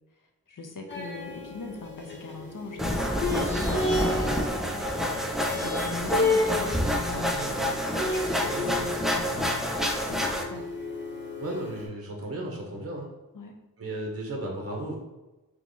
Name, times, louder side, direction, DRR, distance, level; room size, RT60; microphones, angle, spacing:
voice 1, 0.5-4.1 5.5-10.7 12.3-13.0 13.3-13.6, left 3 dB, 60° left, 3 dB, 0.7 m, -41 dB
More Sitar, 0.9-11.9, left 2 dB, 30° left, 1.1 m, -32 dB
sound 1, 2.8-10.4, equal, ahead, 0.4 m, -28 dB
voice 2, 11.4-13.1 13.8-15.0, right 1 dB, 40° right, -1 dB, 0.8 m, -34 dB
3.5 x 3.0 x 3.8 m, 1.0 s
wide cardioid pair, 80°, 35 cm